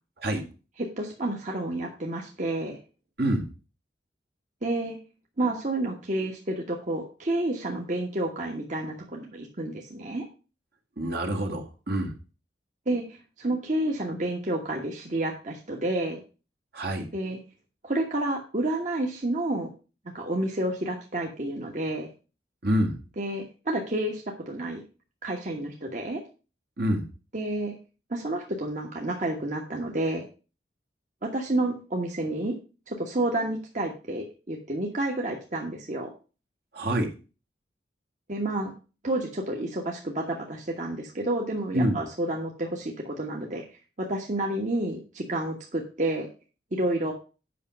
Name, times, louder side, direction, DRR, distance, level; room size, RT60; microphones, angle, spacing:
voice 1, 0.8-2.8 4.6-5.0 5.4-10.3 12.9-16.2 17.1-17.4 17.8-19.7 20.1-22.1 23.2-24.8 25.2-26.2 27.3-27.7 28.1-30.2 31.2-32.5 32.9-36.1 38.3-38.7 39.0-43.6 44.0-46.3 46.7-47.1, right 1 dB, 45° right, 0 dB, 1.3 m, -30 dB
voice 2, 11.0-12.1 16.7-17.1 22.6-23.0 26.8-27.0 36.7-37.1 41.7-41.9, right 1 dB, 60° right, 2 dB, 1.8 m, -26 dB
8.5 x 5.8 x 5.3 m, 0.33 s
head